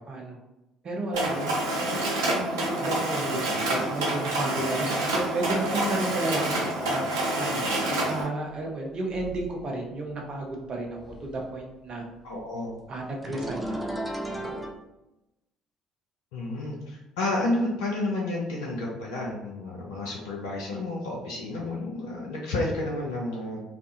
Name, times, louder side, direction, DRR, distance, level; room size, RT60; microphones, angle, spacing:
voice 1, 0.1-0.4 0.8-1.6 1.9-7.6 7.9-12.0 12.9-14.6, right 2 dB, 40° right, 0 dB, 0.7 m, -33 dB
Mechanisms, 1.1-8.2, right 1 dB, 75° right, 0.5 m, -27 dB
sound 1, 8.7-8.8 9.1-9.9 10.3-11.6 11.9-14.7, right 1 dB, ahead, 0.4 m, -36 dB
voice 2, 12.2-12.7 16.3-23.6, left 2 dB, 75° left, -3 dB, 0.4 m, -30 dB
2.5 x 2.3 x 2.6 m, 0.95 s
figure-of-eight pair, 50°, 2 cm